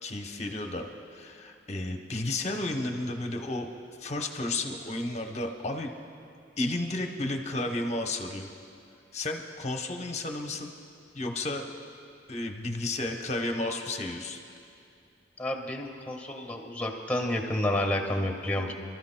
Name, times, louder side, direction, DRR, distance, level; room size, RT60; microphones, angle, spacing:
voice 1, 0.0-3.7 4.0-5.9 6.6-8.5 9.1-10.7 11.1-11.6 12.3-14.4, left 2 dB, 35° left, 3 dB, 0.8 m, -32 dB
voice 2, 15.4-18.7, left 1 dB, 5° left, 3 dB, 1.4 m, -30 dB
28.0 x 13.0 x 2.2 m, 2.5 s
head